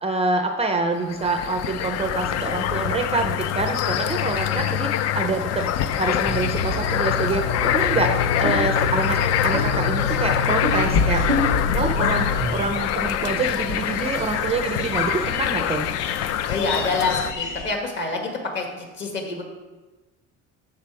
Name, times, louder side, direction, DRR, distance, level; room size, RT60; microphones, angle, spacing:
voice 1, 0.0-4.9 5.2-5.7 6.0-7.4 7.7-8.1 8.4-9.2 9.4-11.3 11.7-15.9, right 3 dB, 20° right, 5 dB, 0.4 m, -26 dB
sound 1, 1.0-17.3, left 10 dB, 55° left, 0.5 m, -25 dB
sound 2, 6.3-12.6, left 3 dB, 20° left, 1.1 m, -26 dB
sound 3, 9.1-17.7, left 5 dB, 80° left, 1.1 m, -30 dB
voice 2, 16.5-19.4, left 3 dB, 35° left, 2 dB, 1.7 m, -27 dB
13.5 x 4.9 x 4.7 m, 1.2 s
cardioid pair, 170°, 30 cm